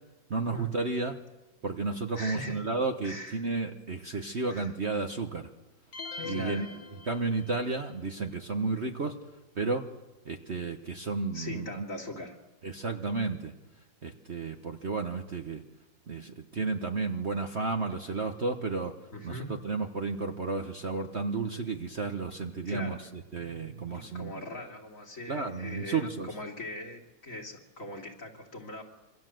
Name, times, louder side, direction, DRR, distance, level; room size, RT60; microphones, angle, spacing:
voice 1, 0.3-1.2 1.6-5.5 6.2-6.7 7.1-9.2 9.5-9.8 10.2-11.9 12.6-13.5 14.0-15.6 16.1-18.9 19.2-24.4 25.3-26.3, right 3 dB, 40° right, 5 dB, 1.3 m, -32 dB
voice 2, 2.1-2.6 3.0-3.5 4.5-5.1 6.1-6.6 11.3-12.4 19.1-19.5 22.6-23.0 23.9-28.8, left 1 dB, 45° left, 1 dB, 3.5 m, -40 dB
sound 1, 5.9-7.7, left 4 dB, 75° left, 2.2 m, -42 dB
26.5 x 24.5 x 7.7 m, 1.1 s
omnidirectional pair, 2.0 m